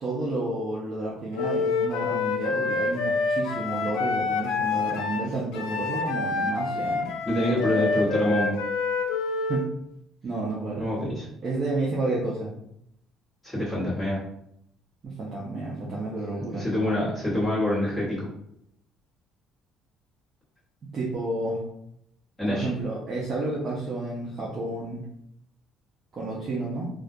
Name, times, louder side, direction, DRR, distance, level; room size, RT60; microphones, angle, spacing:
voice 1, 0.0-7.1 9.5-9.6 10.2-10.8 11.4-12.5 15.0-16.6 20.9-21.6 22.5-25.0 26.1-26.8, right 2 dB, 30° right, -5 dB, 0.4 m, -30 dB
Wind instrument woodwind instrument, 1.3-9.7, left 4 dB, 90° left, 0.3 m, -27 dB
voice 2, 7.2-8.6 10.7-11.2 13.4-14.2 16.6-18.3 22.4-22.7, left 1 dB, 10° left, -10 dB, 1.1 m, -26 dB
2.2 x 2.2 x 2.5 m, 0.75 s
cardioid pair, 175°, 0 cm